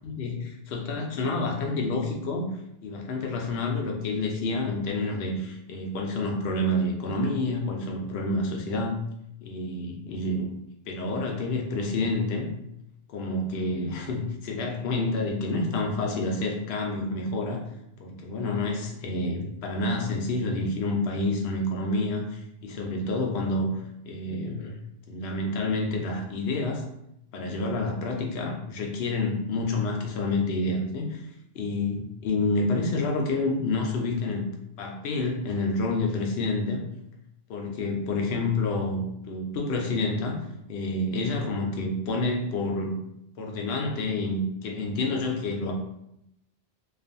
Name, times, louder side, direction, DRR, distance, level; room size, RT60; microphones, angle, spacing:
voice 1, 0.0-2.5 2.8-9.0 9.4-10.5 10.9-12.5 13.1-17.6 18.0-23.7 24.1-24.7 25.1-26.8 27.3-31.2 31.5-32.0 32.2-34.4 34.8-36.9 37.5-40.4 40.7-42.9 43.4-45.7, left 2 dB, 70° left, 1 dB, 0.8 m, -28 dB
2.4 x 2.3 x 2.5 m, 0.79 s
omnidirectional pair, 1.1 m